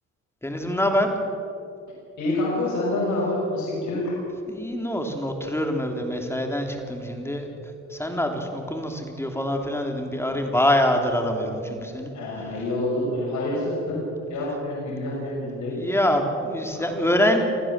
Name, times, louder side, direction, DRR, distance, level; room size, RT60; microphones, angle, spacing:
voice 1, 0.4-1.1 4.5-7.5 7.9-12.1 15.8-17.4, left 1 dB, 10° left, 4 dB, 3.3 m, -25 dB
voice 2, 2.2-4.2 10.1-10.6 12.1-15.7 16.7-17.1, left 1 dB, 70° left, -5 dB, 6.4 m, -27 dB
26.0 x 15.0 x 7.5 m, 2.7 s
cardioid pair, 90°, 30 cm